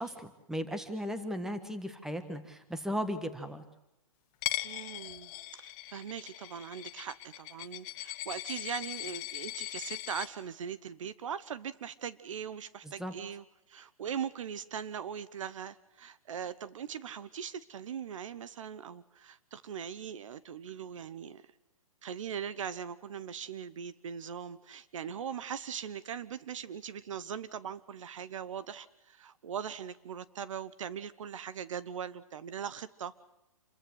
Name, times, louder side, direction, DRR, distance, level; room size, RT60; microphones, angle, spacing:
voice 1, 0.0-3.6 12.8-13.1, equal, ahead, 10 dB, 1.5 m, -36 dB
Coin (dropping), 4.4-10.3, left 15 dB, 30° left, 0.9 m, -39 dB
voice 2, 4.6-21.5 22.0-33.1, right 8 dB, 60° right, 16 dB, 1.1 m, -40 dB
28.0 x 14.5 x 7.9 m, 0.90 s
hypercardioid pair, 145°, 18 cm